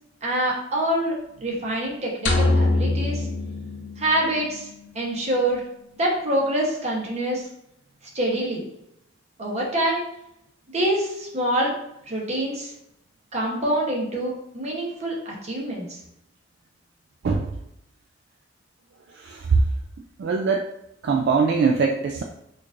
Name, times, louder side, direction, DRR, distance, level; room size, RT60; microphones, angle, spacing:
voice 1, 0.2-3.3 4.0-4.7 4.9-5.6 6.0-7.5 8.1-8.6 9.4-10.1 10.7-11.7 12.1-12.7 13.3-16.0, right 1 dB, 35° right, -3 dB, 1.0 m, -25 dB
sound 1, 2.3-4.5, left 2 dB, 70° left, 0.6 m, -23 dB
voice 2, 20.2-20.6 21.0-22.2, right 5 dB, 60° right, 1 dB, 0.3 m, -22 dB
4.5 x 2.5 x 2.5 m, 0.80 s
head